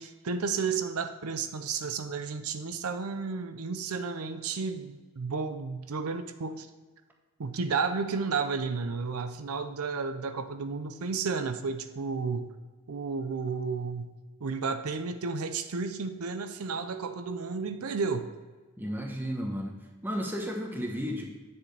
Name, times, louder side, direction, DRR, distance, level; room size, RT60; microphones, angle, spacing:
voice 1, 0.0-6.7 7.4-12.5 12.9-14.1 14.4-18.3, right 5 dB, 85° right, 9 dB, 0.6 m, -32 dB
voice 2, 18.8-19.8 20.0-21.2, equal, 10° right, 0 dB, 1.0 m, -33 dB
9.8 x 6.6 x 3.3 m, 1.3 s
head